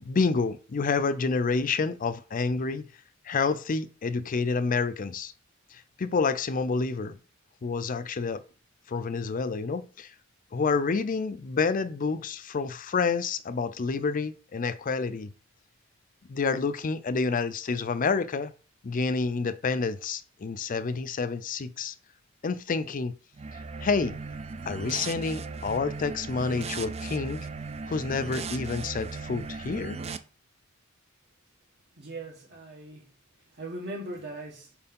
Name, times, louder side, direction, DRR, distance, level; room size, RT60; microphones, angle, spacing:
voice 1, 0.0-2.9 3.3-5.3 5.7-7.2 7.6-8.4 8.9-10.1 10.5-15.3 16.3-18.5 18.8-21.9 22.4-23.1 23.8-24.2 24.6-27.5 27.9-30.0, left 4 dB, 40° left, 0.5 m, -28 dB
sound 1, 23.3-30.2, right 4 dB, 30° right, 0.4 m, -37 dB
voice 2, 32.0-33.1 33.5-34.7, right 1 dB, 55° right, 1.4 m, -39 dB
4.7 x 4.4 x 5.3 m
head